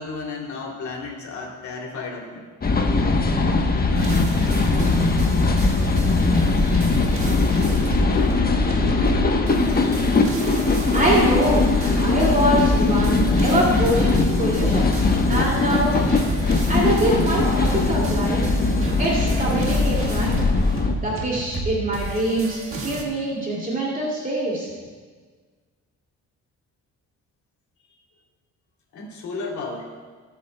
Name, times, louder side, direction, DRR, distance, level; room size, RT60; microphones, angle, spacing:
voice 1, 0.0-2.4 3.9-4.1 28.9-29.9, left 3 dB, 70° left, -1 dB, 2.9 m, -33 dB
sound 1, 2.6-20.9, left 3 dB, 30° left, 1.0 m, -20 dB
sound 2, 3.9-23.0, right 3 dB, 45° right, 1.6 m, -33 dB
voice 2, 10.9-11.7 12.0-14.9 15.3-16.0 16.7-18.4 19.0-20.4 21.0-24.7, right 1 dB, 30° right, -4 dB, 2.5 m, -24 dB
18.5 x 8.2 x 2.2 m, 1.4 s
cardioid pair, 90°, 30 cm